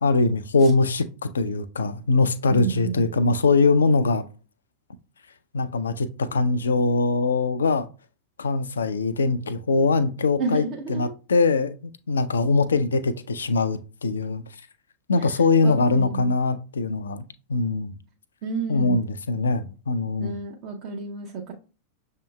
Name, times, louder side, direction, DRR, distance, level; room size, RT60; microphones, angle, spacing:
voice 1, 0.0-4.2 5.5-7.9 8.4-14.4 15.1-17.2 17.5-18.0 18.7-20.3, left 3 dB, 70° left, 0.4 m, -22 dB
voice 2, 2.5-3.0 10.4-11.1 15.2-15.4 15.6-16.3 18.4-19.0 20.2-21.5, right 4 dB, 45° right, 0.7 m, -30 dB
6.7 x 2.8 x 2.2 m
figure-of-eight pair, 90°, 0 cm